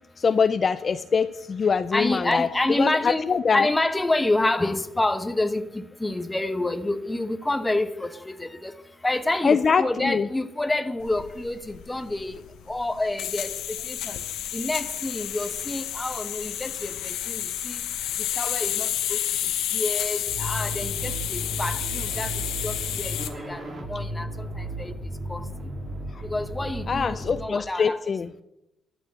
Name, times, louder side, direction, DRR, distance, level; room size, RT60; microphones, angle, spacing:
voice 1, 0.2-3.7 9.4-10.3 26.1-26.2 26.9-28.3, left 5 dB, 40° left, 0.4 m, -23 dB
voice 2, 1.9-8.7 9.0-12.4 12.7-13.5 13.8-14.2 14.5-17.8 18.4-19.2 19.7-22.3 22.6-24.9 25.3-25.4 26.3-28.0, left 2 dB, 15° left, 1.0 m, -28 dB
sound 1, 11.0-23.4, left 11 dB, 85° left, 1.0 m, -31 dB
sound 2, 20.3-27.4, right 1 dB, 40° right, 2.6 m, -34 dB
12.0 x 6.3 x 8.5 m
cardioid pair, 90°, 0 cm